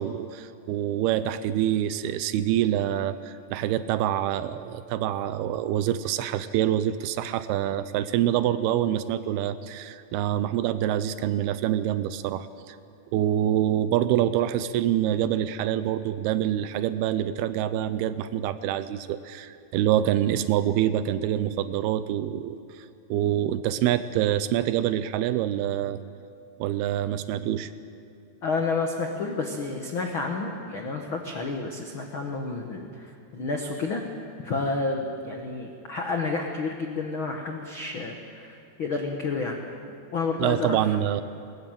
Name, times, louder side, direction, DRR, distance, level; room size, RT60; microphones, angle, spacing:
voice 1, 0.0-12.8 13.1-26.0 26.6-27.7 40.4-41.2, right 11 dB, 80° right, 13 dB, 2.5 m, -26 dB
voice 2, 28.4-34.0 34.4-39.6 40.1-40.8, left 3 dB, 75° left, 2 dB, 1.1 m, -30 dB
21.0 x 20.0 x 9.2 m, 2.6 s
omnidirectional pair, 4.8 m